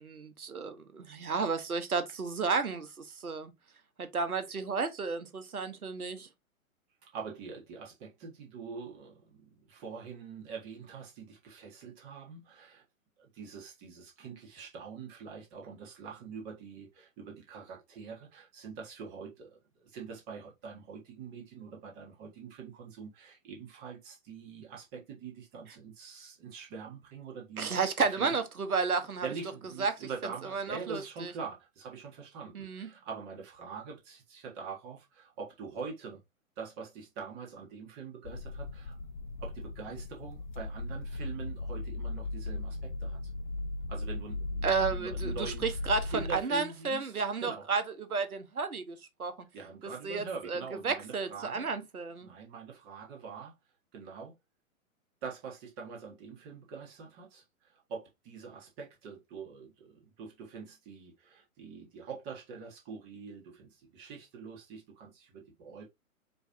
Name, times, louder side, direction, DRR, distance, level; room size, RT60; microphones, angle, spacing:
voice 1, 0.0-3.5 4.0-6.3 27.6-29.3 29.8-29.9 30.4-31.3 32.5-32.9 44.6-49.3 50.0-52.3, right 4 dB, 80° right, 1.0 m, -32 dB
voice 2, 7.0-12.8 13.2-27.7 28.2-28.3 29.2-36.2 36.6-39.0 39.4-43.2 43.9-45.6 46.0-47.6 49.5-51.7 52.2-53.5 53.9-54.3 55.2-65.8, right 5 dB, 25° right, 1.6 m, -44 dB
sound 1, 38.2-46.4, left 2 dB, 35° left, 0.4 m, -37 dB
4.6 x 3.2 x 2.6 m
figure-of-eight pair, 125°, 43 cm